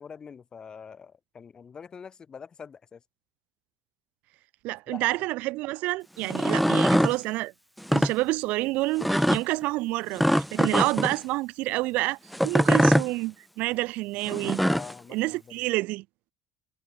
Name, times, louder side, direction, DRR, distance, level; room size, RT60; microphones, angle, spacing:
voice 1, 0.0-3.0 4.9-5.2 14.6-15.7, left 6 dB, 30° left, 3.7 m, -44 dB
voice 2, 4.6-7.5 7.9-12.2 12.4-14.6 15.1-16.0, right 20 dB, 70° right, 0.7 m, -28 dB
sound 1, 6.2-7.1 7.8-8.1 9.0-9.4 10.2-11.1 12.3-13.1 14.3-14.9, equal, ahead, 0.4 m, -22 dB
supercardioid pair, 110°, 3 cm